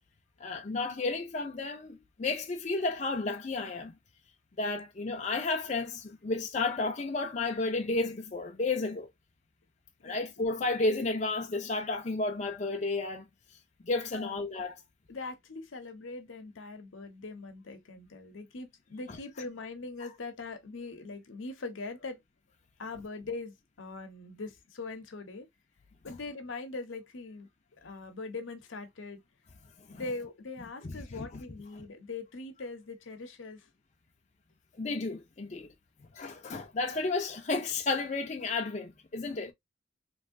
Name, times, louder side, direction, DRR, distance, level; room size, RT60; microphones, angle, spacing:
voice 1, 0.4-3.9 4.6-9.1 10.0-13.2 13.8-14.7 19.1-19.2 29.8-30.0 30.8-31.4 34.7-35.7 36.1-39.5, left 3 dB, 35° left, 0.5 m, -32 dB
voice 2, 15.1-22.2 22.8-25.5 26.0-27.5 27.8-29.2 29.9-33.7 39.4-39.5, left 3 dB, 85° left, 0.8 m, -41 dB
3.1 x 2.7 x 2.5 m
head